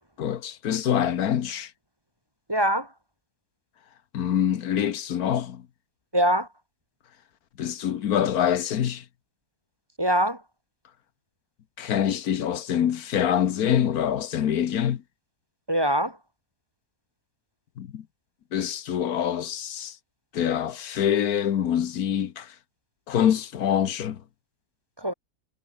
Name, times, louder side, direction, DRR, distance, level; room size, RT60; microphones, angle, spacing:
voice 1, 0.2-1.7 4.1-5.6 7.6-9.0 11.8-15.0 17.8-18.0 18.5-20.0 20.3-22.5 23.1-24.2, left 9 dB, 85° left, 1.5 m, -25 dB
voice 2, 2.5-2.9 6.1-6.5 10.0-10.4 15.7-16.2 25.0-25.1, right 1 dB, 15° right, 3.8 m, -23 dB
omnidirectional pair, 1.5 m